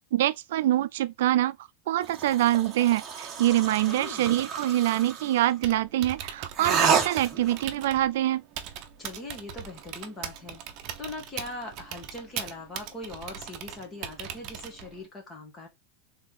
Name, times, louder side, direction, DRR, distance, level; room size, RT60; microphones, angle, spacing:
voice 1, 0.1-1.6 1.9-8.4, right 14 dB, 75° right, 0.4 m, -25 dB
sound 1, 2.0-5.4 6.5-7.6, right 6 dB, 20° right, 1.1 m, -29 dB
voice 2, 3.7-4.3 9.0-10.6 11.0-15.7, left 2 dB, 20° left, 1.7 m, -41 dB
Typing, 5.5-15.1, right 9 dB, 40° right, 0.7 m, -40 dB
4.2 x 3.5 x 3.5 m
supercardioid pair, 160°, 0 cm